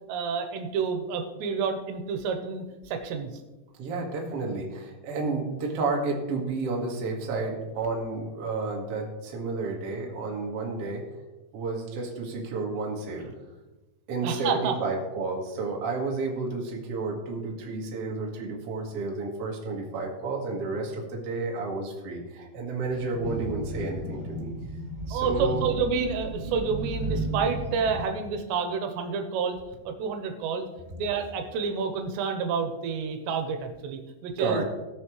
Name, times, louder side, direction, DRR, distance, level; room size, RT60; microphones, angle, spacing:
voice 1, 0.1-3.3 13.2-13.3 14.2-14.7 25.1-29.6 29.9-30.7 30.9-34.6, right 5 dB, 85° right, 6 dB, 3.0 m, -29 dB
voice 2, 3.8-11.0 11.5-13.3 14.1-24.5 25.1-25.7 34.4-34.6, right 3 dB, 55° right, -1 dB, 1.8 m, -31 dB
sound 1, 22.9-28.0, right 2 dB, 15° right, 2.3 m, -34 dB
19.0 x 6.3 x 3.2 m, 1.1 s
omnidirectional pair, 5.1 m